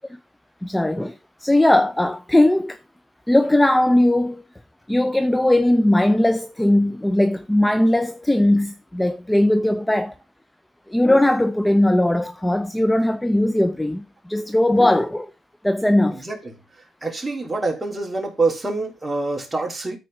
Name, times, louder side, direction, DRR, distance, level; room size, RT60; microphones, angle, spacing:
voice 1, 0.6-2.8 3.3-4.4 4.9-10.1 10.9-15.3 15.6-16.2, left 1 dB, 5° left, 0.6 m, -19 dB
voice 2, 17.0-20.0, right 3 dB, 15° right, 3.6 m, -25 dB
13.5 x 4.7 x 3.9 m
cardioid pair, 90°, 0 cm